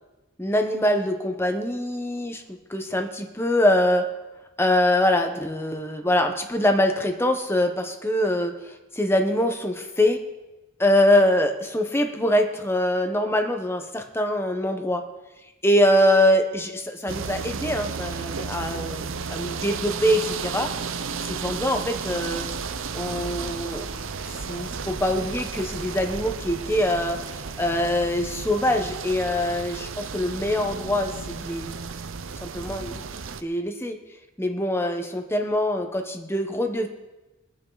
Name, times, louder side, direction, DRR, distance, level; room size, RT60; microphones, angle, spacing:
voice 1, 0.4-2.4 2.7-4.1 4.6-8.5 8.9-10.2 10.8-15.0 15.6-20.7 21.2-22.4 22.9-23.8 24.4-27.3 27.6-31.7 32.4-33.0 33.4-34.0 34.4-36.9, left 1 dB, 10° left, 5 dB, 1.2 m, -23 dB
sound 1, 17.1-33.4, right 5 dB, 85° right, 0.7 m, -33 dB
22.5 x 9.1 x 4.1 m, 1.1 s
head